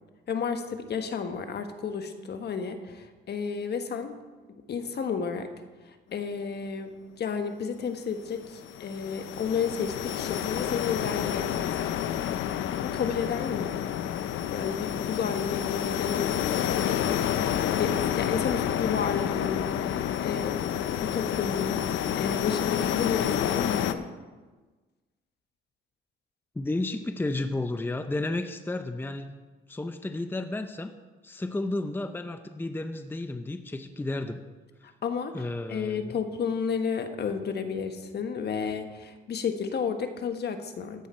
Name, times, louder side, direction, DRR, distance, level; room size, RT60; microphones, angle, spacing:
voice 1, 0.3-4.1 4.7-5.5 5.9-6.9 7.2-12.1 12.8-13.9 14.5-17.2 17.8-20.6 21.0-21.8 22.2-24.1 34.8-41.1, left 6 dB, 55° left, 7 dB, 1.4 m, -32 dB
sound 1, 8.3-23.9, left 10 dB, 75° left, 0.7 m, -29 dB
voice 2, 26.6-29.4 29.7-30.9 31.2-34.4 35.3-36.1, left 2 dB, 10° left, 8 dB, 0.7 m, -32 dB
14.0 x 10.0 x 4.4 m, 1.3 s
cardioid pair, 90°, 20 cm